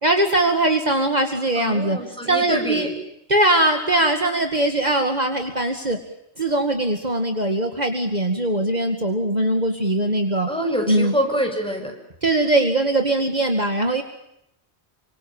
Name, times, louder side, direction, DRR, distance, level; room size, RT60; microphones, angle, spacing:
voice 1, 0.0-2.0 2.3-2.9 3.3-6.0 6.4-10.5 10.9-11.1 12.2-14.0, right 1 dB, 40° right, 5 dB, 2.4 m, -21 dB
voice 2, 1.6-2.9 10.5-11.9, equal, 5° left, 2 dB, 7.4 m, -25 dB
28.5 x 26.0 x 7.2 m, 0.80 s
omnidirectional pair, 1.2 m